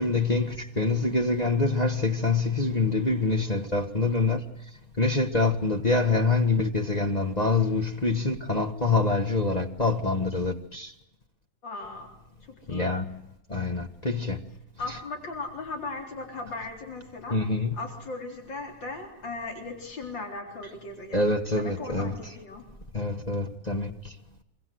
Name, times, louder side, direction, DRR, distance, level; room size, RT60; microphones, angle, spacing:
voice 1, 0.0-4.4 5.0-10.9 12.7-13.1 13.5-14.4 17.3-17.7 21.1-22.1 22.9-23.9, left 3 dB, 25° left, 1.6 m, -25 dB
voice 2, 11.6-12.1 12.7-12.9 14.8-22.6, left 3 dB, 80° left, 4.6 m, -38 dB
26.0 x 25.0 x 7.9 m
omnidirectional pair, 2.0 m